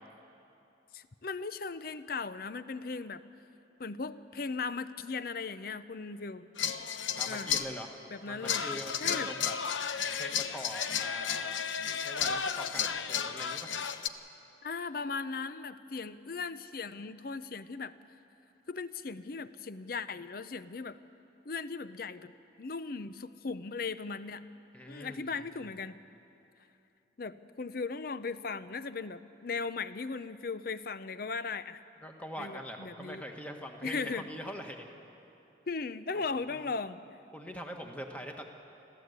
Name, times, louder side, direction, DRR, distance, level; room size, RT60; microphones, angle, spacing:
voice 1, 0.9-3.2 3.8-6.5 7.3-7.5 8.1-8.6 9.0-9.3 14.6-17.9 18.7-21.0 21.4-22.3 22.6-24.4 24.9-26.0 27.2-31.8 32.4-33.2 33.8-34.2 35.7-37.0, left 4 dB, 50° left, 13 dB, 0.6 m, -37 dB
sound 1, 6.6-7.7 8.4-14.1, left 7 dB, 85° left, 0.8 m, -33 dB
voice 2, 7.1-8.0 8.2-9.5 10.0-11.6 12.0-13.7 24.7-25.7 32.0-34.9 36.1-36.7 37.3-38.4, equal, 10° left, 3 dB, 1.5 m, -43 dB
26.0 x 14.5 x 8.2 m, 2.8 s
head